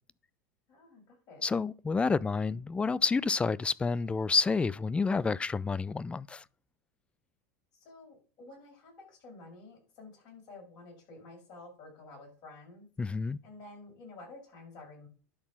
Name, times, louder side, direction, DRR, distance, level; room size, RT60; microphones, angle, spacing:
voice 1, 0.7-1.5 7.7-12.9 13.4-15.1, left 2 dB, 50° left, 6.4 m, -51 dB
voice 2, 1.4-6.4 13.0-13.4, left 4 dB, 15° left, 0.4 m, -29 dB
11.0 x 4.1 x 7.1 m
supercardioid pair, 110°, 9 cm